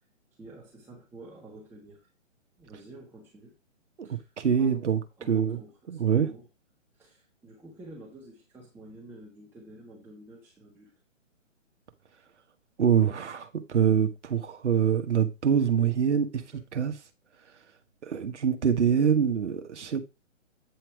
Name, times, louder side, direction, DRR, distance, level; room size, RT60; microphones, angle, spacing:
voice 1, 0.4-2.0 2.6-3.5 4.0-4.8 5.2-6.5 7.0-10.9 16.5-16.6, right 2 dB, 5° right, 1.4 m, -49 dB
voice 2, 4.4-5.0 5.3-5.6 5.9-6.3 12.8-16.4 16.7-16.9 18.0-20.0, right 8 dB, 65° right, 1.3 m, -24 dB
9.1 x 4.5 x 4.6 m
figure-of-eight pair, 135°, 38 cm